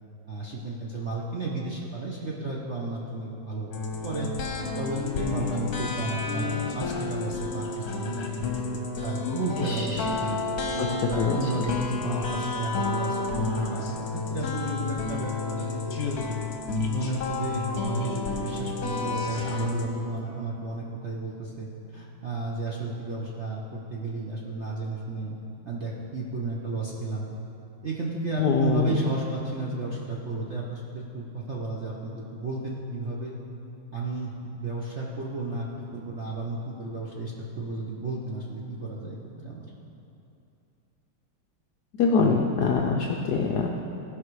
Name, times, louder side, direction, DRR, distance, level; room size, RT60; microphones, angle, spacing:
voice 1, 0.3-3.7 4.0-4.3 4.8-10.4 11.1-16.4 16.9-25.4 25.6-27.3 27.8-33.4 33.9-39.7, right 3 dB, 50° right, -4 dB, 0.8 m, -33 dB
sound 1, 3.7-19.9, left 4 dB, 55° left, 1.2 m, -31 dB
voice 2, 9.6-10.1 10.8-11.5 28.4-29.1 42.0-43.7, left 5 dB, 75° left, 1 dB, 0.9 m, -24 dB
16.5 x 5.5 x 4.7 m, 2.7 s
omnidirectional pair, 2.3 m